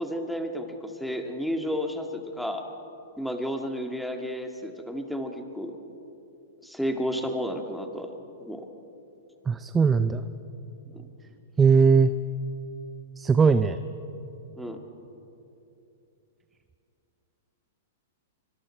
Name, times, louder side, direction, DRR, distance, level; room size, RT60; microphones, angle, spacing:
voice 1, 0.0-2.7 3.2-5.8 6.6-8.1 8.4-8.7 10.9-11.1 14.6-14.8, equal, ahead, 3 dB, 1.8 m, -32 dB
voice 2, 9.5-10.2 11.6-12.1 13.2-13.8, right 5 dB, 15° right, 11 dB, 0.6 m, -19 dB
24.5 x 24.5 x 4.5 m, 2.9 s
hypercardioid pair, 130°, 0 cm